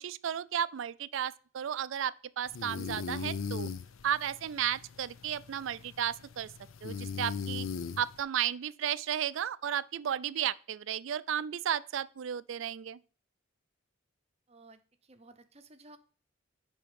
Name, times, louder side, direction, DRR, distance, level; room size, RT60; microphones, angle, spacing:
voice 1, 0.0-3.7 4.0-6.5 6.8-7.7 8.0-13.0, right 9 dB, 65° right, 0.4 m, -33 dB
sound 1, 2.5-8.2, left 5 dB, 85° left, 0.5 m, -39 dB
voice 2, 14.5-16.0, right 2 dB, 30° right, 0.7 m, -56 dB
9.8 x 3.6 x 5.1 m
head